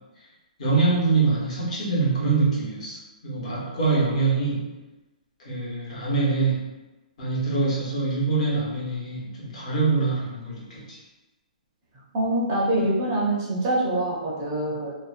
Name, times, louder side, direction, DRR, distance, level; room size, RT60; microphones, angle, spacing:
voice 1, 0.6-4.6 5.4-6.6 7.2-11.0, right 3 dB, 50° left, -6 dB, 1.0 m, -24 dB
voice 2, 12.1-14.9, right 1 dB, 25° right, -6 dB, 0.5 m, -24 dB
2.7 x 2.1 x 2.5 m, 1.1 s
hypercardioid pair, 170°, 5 cm